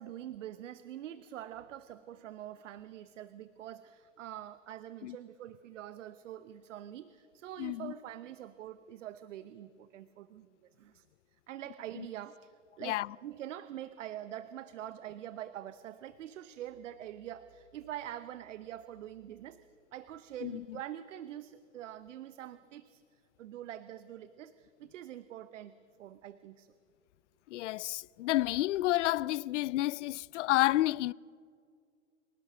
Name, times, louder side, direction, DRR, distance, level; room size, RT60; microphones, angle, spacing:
voice 1, 0.0-11.1 11.5-26.7, right 11 dB, 70° right, 0.9 m, -45 dB
voice 2, 7.6-7.9 12.0-12.1 12.8-13.1 20.4-20.6 27.5-31.1, left 16 dB, 65° left, 0.5 m, -30 dB
25.0 x 18.0 x 6.8 m
hypercardioid pair, 120°, 38 cm